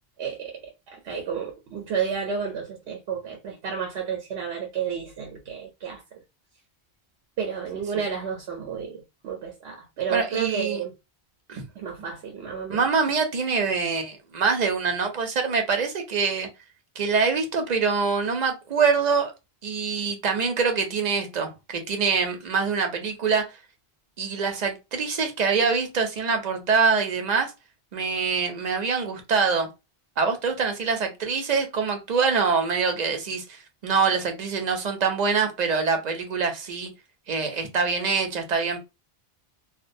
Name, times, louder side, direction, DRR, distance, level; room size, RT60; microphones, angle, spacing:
voice 1, 0.2-6.0 7.4-10.9 11.8-12.8, right 7 dB, 90° right, 0.9 m, -31 dB
voice 2, 10.1-10.8 11.5-11.7 12.7-16.5 17.0-19.3 19.6-23.5 24.2-27.5 27.9-29.7 30.2-36.9 37.3-38.8, right 5 dB, 50° right, 0.6 m, -24 dB
2.4 x 2.2 x 2.5 m
omnidirectional pair, 1.1 m